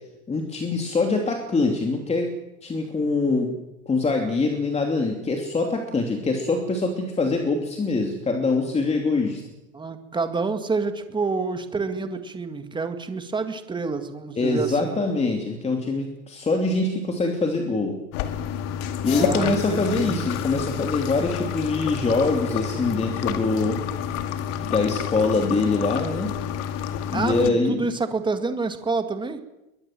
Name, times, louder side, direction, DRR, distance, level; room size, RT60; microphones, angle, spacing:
voice 1, 0.3-2.3 2.6-3.5 3.9-9.4 14.4-18.0 19.0-23.8 24.6-26.3 27.1-27.8, left 3 dB, 15° left, 3 dB, 2.9 m, -24 dB
voice 2, 9.7-15.0 19.0-20.3 27.1-29.4, right 4 dB, 10° right, 8 dB, 2.0 m, -28 dB
sound 1, 18.1-27.5, left 9 dB, 55° left, 2.4 m, -29 dB
22.0 x 21.0 x 7.7 m, 0.97 s
supercardioid pair, 135°, 44 cm